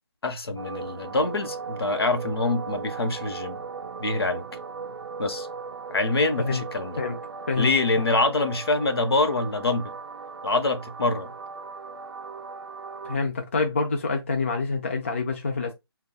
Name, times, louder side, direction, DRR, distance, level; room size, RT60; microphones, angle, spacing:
voice 1, 0.2-3.6 4.0-4.4 5.2-5.5 5.9-7.0 7.6-9.9 10.4-11.3, left 2 dB, 65° left, 0.8 m, -25 dB
sound 1, 0.6-13.2, right 5 dB, 65° right, 0.4 m, -38 dB
voice 2, 13.0-15.7, left 4 dB, 30° left, 0.4 m, -27 dB
3.8 x 2.2 x 2.3 m
figure-of-eight pair, 165°, 14 cm